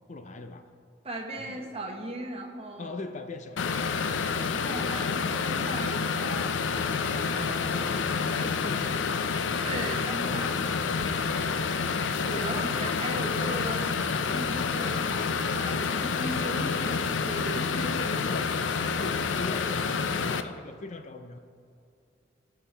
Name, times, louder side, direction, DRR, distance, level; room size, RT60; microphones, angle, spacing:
voice 1, 0.1-0.7 1.4-1.6 2.8-3.9 7.7-9.3 10.2-11.6 17.8-18.6 18.9-21.4, left 2 dB, 40° left, 8 dB, 0.6 m, -40 dB
voice 2, 1.0-3.0 4.4-7.9 9.6-10.6 12.0-14.0 14.2-17.9 18.9-19.0, right 1 dB, 35° right, 1 dB, 1.2 m, -38 dB
sound 1, 3.6-20.4, left 5 dB, 90° left, 0.5 m, -28 dB
17.5 x 5.8 x 3.4 m, 2.6 s
head